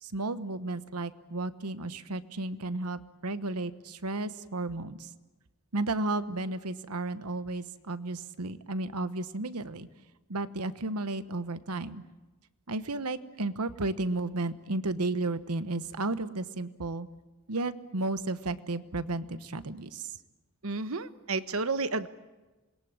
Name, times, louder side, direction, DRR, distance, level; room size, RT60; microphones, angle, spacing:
voice 1, 0.0-5.1 5.7-9.9 10.3-12.0 12.7-17.1 17.5-20.2, right 2 dB, 90° right, 13 dB, 1.2 m, -33 dB
voice 2, 20.6-22.1, right 3 dB, 65° right, 12 dB, 1.2 m, -31 dB
27.5 x 22.0 x 8.9 m, 1.2 s
head